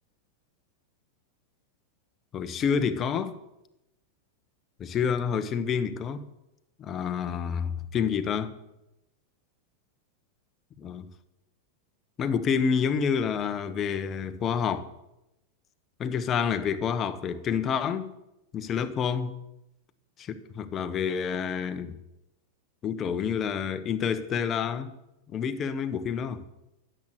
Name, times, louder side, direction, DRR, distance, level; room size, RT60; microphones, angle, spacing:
voice 1, 2.3-3.4 4.8-6.3 6.8-8.5 10.8-11.0 12.2-14.9 16.0-18.1 18.5-19.4 20.2-22.0 22.8-24.9 25.3-26.4, left 7 dB, 30° left, 1.1 m, -28 dB
10.5 x 7.8 x 8.1 m
hypercardioid pair, 105°, 0 cm